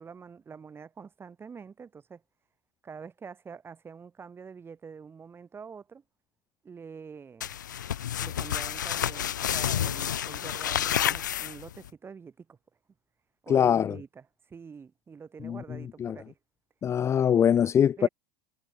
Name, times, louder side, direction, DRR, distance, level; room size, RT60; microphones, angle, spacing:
voice 1, 0.0-2.2 2.8-6.0 6.6-7.6 8.2-12.6 13.4-16.4 18.0-18.1, right 6 dB, 25° right, 7.6 m, -46 dB
sound 1, 7.4-11.9, left 10 dB, 85° left, 1.4 m, -30 dB
voice 2, 13.5-14.0 15.4-15.6 16.0-16.2 16.8-18.1, left 8 dB, 30° left, 0.6 m, -23 dB
hypercardioid pair, 90°, 10 cm